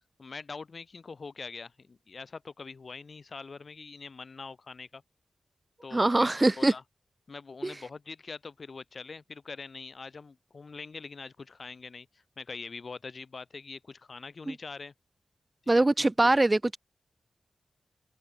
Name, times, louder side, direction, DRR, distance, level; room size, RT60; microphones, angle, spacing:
voice 1, 0.2-5.0 5.8-6.8 7.3-12.1 12.4-14.9 15.6-16.3, left 4 dB, 50° left, 2.6 m, -43 dB
voice 2, 5.9-6.7 7.6-7.8 14.5-14.6 15.7-16.8, right 2 dB, 25° right, 0.4 m, -23 dB
wide cardioid pair, 105°, 0 cm